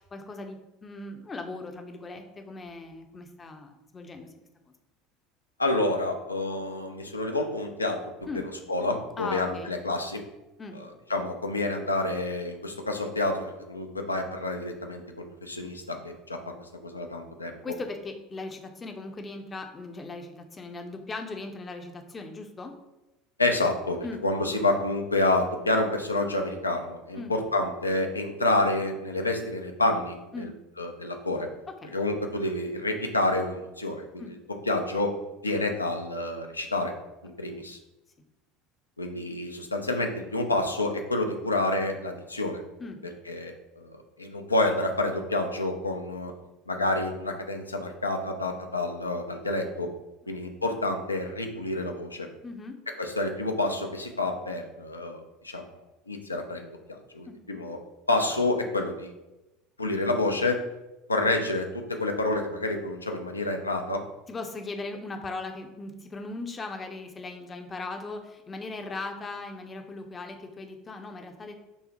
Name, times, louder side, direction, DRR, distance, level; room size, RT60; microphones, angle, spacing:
voice 1, 0.0-4.3 8.3-8.4 9.2-9.7 10.6-10.8 17.6-22.7 24.0-24.2 27.2-27.3 30.3-30.5 31.8-31.9 34.2-34.3 37.5-37.7 42.8-43.0 50.2-50.3 52.4-52.7 57.3-57.4 58.3-58.4 64.3-71.5, left 3 dB, 25° left, 4 dB, 0.5 m, -38 dB
voice 2, 5.6-8.0 8.7-10.2 10.7-15.0 15.4-17.6 23.4-30.5 30.8-31.5 31.8-34.1 34.7-35.1 35.4-36.9 37.2-37.8 39.0-42.6 43.3-46.3 46.7-49.9 50.3-52.3 53.0-55.8 56.1-57.8 58.1-59.1 59.8-60.6 61.1-64.0, left 2 dB, 90° left, 4 dB, 0.4 m, -28 dB
5.4 x 2.0 x 2.9 m, 0.99 s
figure-of-eight pair, 70°, 0 cm